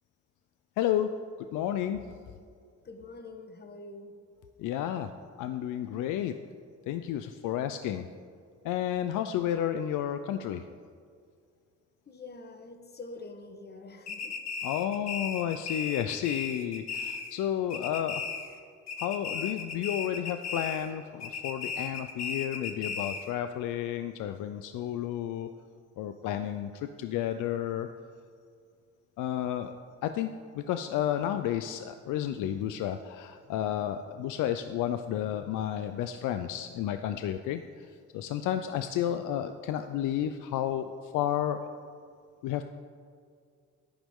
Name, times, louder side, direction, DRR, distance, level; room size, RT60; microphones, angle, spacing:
voice 1, 0.8-1.2 1.5-2.1 4.6-5.1 5.4-6.3 6.9-8.1 8.6-10.7 14.6-18.2 19.0-25.5 26.0-27.9 29.2-29.7 30.0-41.6 42.4-42.6, left 11 dB, 90° left, 9 dB, 0.5 m, -31 dB
voice 2, 2.8-4.1 12.1-14.4, left 3 dB, 35° left, 5 dB, 1.3 m, -45 dB
sound 1, 14.1-17.4 17.7-18.6 18.9-20.9 21.2-23.3, left 5 dB, 60° left, 1.4 m, -36 dB
14.0 x 10.5 x 3.7 m, 2.2 s
cardioid pair, 90°, 30 cm